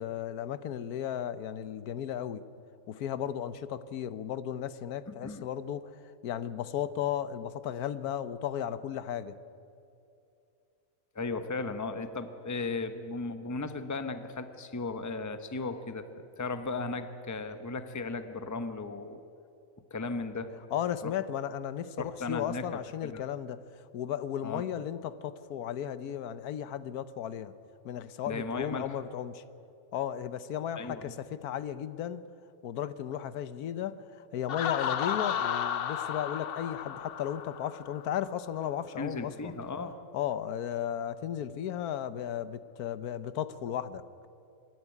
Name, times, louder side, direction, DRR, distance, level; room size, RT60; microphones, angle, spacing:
voice 1, 0.0-2.4 2.9-9.3 20.7-23.6 23.9-27.5 27.8-29.4 29.9-32.2 32.6-39.5 40.1-44.0, left 10 dB, 90° left, 14 dB, 1.3 m, -35 dB
voice 2, 5.1-5.4 11.1-19.2 19.9-20.5 21.0-21.1 22.0-23.2 24.4-24.6 28.3-29.0 30.8-31.1 39.0-40.0, left 3 dB, 15° left, 9 dB, 0.8 m, -36 dB
Laughter, 34.5-38.2, left 9 dB, 55° left, 0.6 m, -33 dB
25.0 x 11.0 x 9.9 m, 2.6 s
omnidirectional pair, 1.6 m